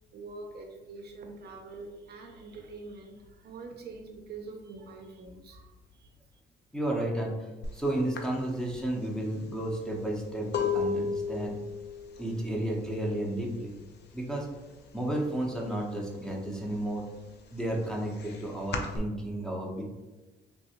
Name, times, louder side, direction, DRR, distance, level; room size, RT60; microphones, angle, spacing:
voice 1, 0.1-6.4, right 3 dB, 55° right, 2 dB, 0.5 m, -45 dB
voice 2, 6.7-11.6 12.2-13.7 14.1-14.5 14.9-17.0 17.5-19.8, right 1 dB, 5° left, -2 dB, 0.7 m, -32 dB
sound 1, 7.6-7.8 8.1-13.8 14.1-14.6 14.9-16.0 16.4-19.0, left 5 dB, 60° left, 0.5 m, -34 dB
3.3 x 2.6 x 2.8 m, 1.1 s
cardioid pair, 90°, 20 cm